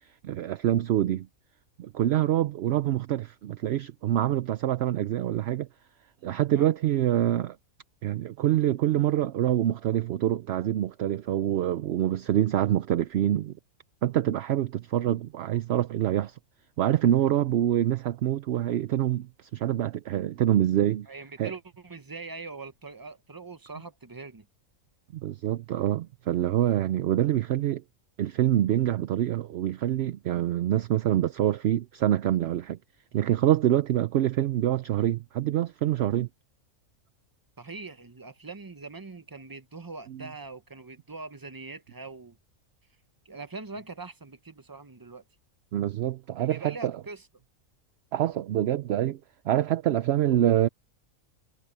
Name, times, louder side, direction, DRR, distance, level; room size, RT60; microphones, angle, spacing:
voice 1, 0.2-1.3 1.8-5.7 6.2-7.6 8.0-13.5 14.0-16.4 16.8-21.1 21.4-21.5 25.1-27.8 28.2-32.8 33.1-36.3 40.1-40.2 45.7-46.9 48.1-49.2 49.4-50.7, right 12 dB, 65° right, 0.7 m, -25 dB
voice 2, 21.1-24.5 37.6-42.4 43.3-45.2 46.4-47.2, right 3 dB, 20° right, 0.6 m, -42 dB
omnidirectional pair, 1.4 m